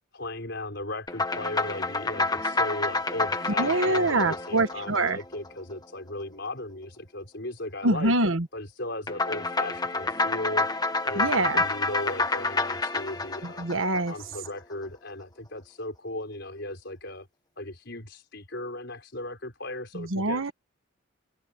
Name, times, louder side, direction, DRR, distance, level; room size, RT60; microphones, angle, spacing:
voice 1, 0.1-8.1 8.5-10.7 11.0-13.7 14.1-17.3 17.6-20.4, left 1 dB, 50° left, 5.9 m, -37 dB
sound 1, 1.1-5.7 9.1-14.5, left 3 dB, 20° left, 1.6 m, -28 dB
voice 2, 3.6-5.2 7.8-8.4 11.2-11.6 13.4-14.1 19.9-20.5, right 2 dB, 65° right, 1.5 m, -25 dB
head